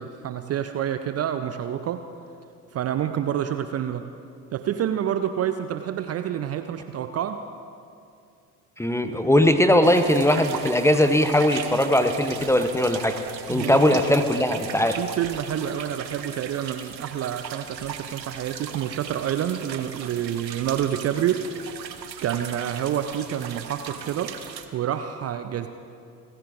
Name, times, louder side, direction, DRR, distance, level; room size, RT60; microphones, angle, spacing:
voice 1, 0.0-2.0 2.7-4.1 4.5-7.4 13.5-14.0 14.8-21.4 22.2-24.4 24.7-25.7, right 10 dB, 30° right, 9 dB, 0.6 m, -28 dB
voice 2, 8.8-13.2 13.5-15.0, left 1 dB, 5° left, 8 dB, 0.8 m, -20 dB
sound 1, 9.8-24.7, right 8 dB, 85° right, 0.9 m, -38 dB
30.0 x 15.0 x 2.6 m, 2.5 s
figure-of-eight pair, 55°, 49 cm